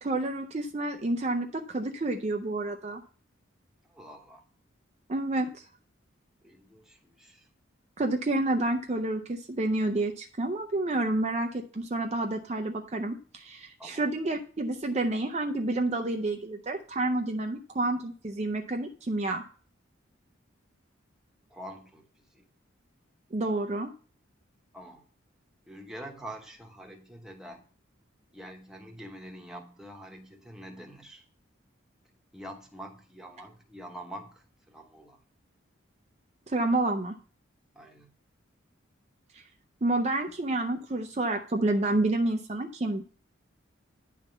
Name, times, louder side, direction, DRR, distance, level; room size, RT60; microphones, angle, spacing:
voice 1, 0.0-3.0 5.1-5.7 8.0-19.4 23.3-23.9 36.5-37.2 39.3-39.4 39.8-43.0, right 2 dB, 35° right, 4 dB, 0.5 m, -29 dB
voice 2, 3.9-4.4 6.4-7.5 13.8-14.1 21.5-22.5 24.7-25.0 25.7-27.6 28.3-31.2 32.3-35.2 37.7-38.1, right 1 dB, 5° right, 1 dB, 1.1 m, -46 dB
10.0 x 3.6 x 6.9 m, 0.41 s
head